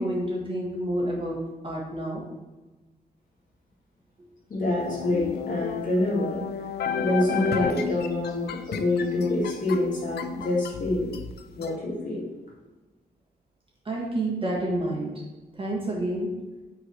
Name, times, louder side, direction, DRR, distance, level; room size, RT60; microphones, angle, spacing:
voice 1, 0.0-2.2 13.8-15.1 15.6-16.3, right 1 dB, 35° right, -3 dB, 1.7 m, -29 dB
voice 2, 4.5-6.4 7.0-11.1 11.6-12.2, left 2 dB, 55° left, -5 dB, 2.4 m, -26 dB
sound 1, 4.9-11.7, left 7 dB, 80° left, 0.5 m, -33 dB
5.6 x 3.9 x 5.9 m, 1.2 s
wide cardioid pair, 155°, 17 cm